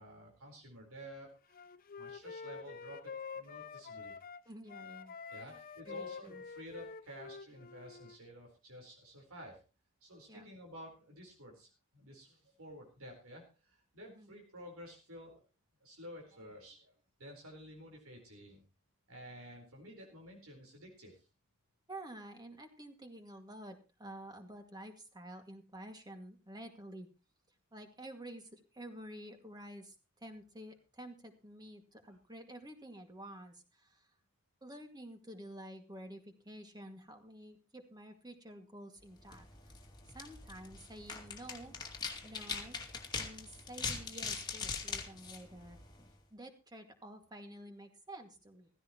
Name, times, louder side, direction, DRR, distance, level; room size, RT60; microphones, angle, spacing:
voice 1, 0.0-1.6 2.0-4.2 5.3-9.6 10.0-15.4 15.8-16.9 17.2-18.6 19.1-21.3 32.0-32.2, equal, 70° right, 0 dB, 4.4 m, -52 dB
Wind instrument woodwind instrument, 1.5-4.4 4.7-8.2, left 5 dB, 40° left, 0.6 m, -47 dB
voice 2, 4.5-5.2 5.4-5.6 5.8-6.4 10.3-10.5 14.0-14.3 21.9-27.1 27.7-34.1 34.6-39.7 40.1-41.7 42.2-42.8 43.1-45.8 46.3-48.7, right 1 dB, 20° right, 5 dB, 2.2 m, -50 dB
sound 1, 39.2-46.2, left 5 dB, 20° left, 2.4 m, -42 dB
16.0 x 15.5 x 3.1 m, 0.32 s
head